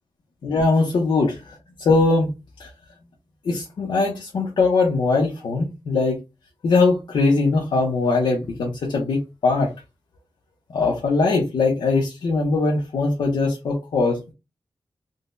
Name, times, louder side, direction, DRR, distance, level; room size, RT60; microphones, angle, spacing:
voice 1, 0.4-2.3 2.6-2.7 3.4-6.2 6.6-9.7 10.7-14.3, left 3 dB, 90° left, 0.7 m, -21 dB
3.8 x 2.1 x 2.5 m
wide cardioid pair, 150°, 8 cm